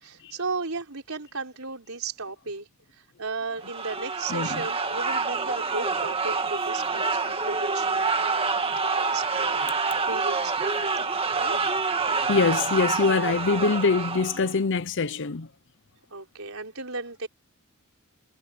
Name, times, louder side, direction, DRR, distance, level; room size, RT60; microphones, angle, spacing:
voice 1, 0.0-2.7 3.0-9.7 10.1-11.6 16.1-17.3, right 3 dB, 65° right, 4.9 m, -35 dB
sound 1, 3.6-14.6, right 4 dB, 25° right, 2.1 m, -27 dB
voice 2, 4.3-4.7 12.0-15.5, left 4 dB, 55° left, 0.7 m, -24 dB
head